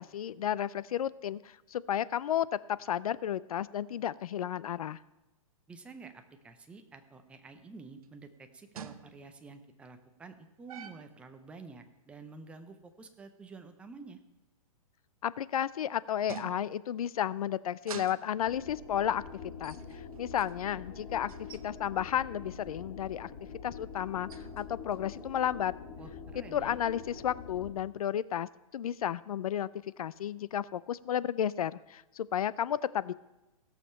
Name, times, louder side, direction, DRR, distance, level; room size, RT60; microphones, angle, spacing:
voice 1, 0.0-2.5 2.8-5.0 15.2-19.2 19.6-21.3 21.6-23.3 23.6-25.7 26.5-29.7 30.0-33.1, left 10 dB, 80° left, 19 dB, 0.5 m, -32 dB
voice 2, 5.7-14.2 26.0-26.8, right 4 dB, 5° right, 7 dB, 0.5 m, -50 dB
sound 1, 8.0-8.1 8.8-9.4 10.7-11.2 15.3-15.7 16.3-17.0 17.7-18.5 19.5-21.7 22.1-22.4 23.9-25.2, right 8 dB, 75° right, 0.8 m, -48 dB
sound 2, 18.3-27.7, left 5 dB, 35° left, 1.5 m, -45 dB
16.5 x 6.6 x 5.6 m, 0.98 s
hypercardioid pair, 155°, 19 cm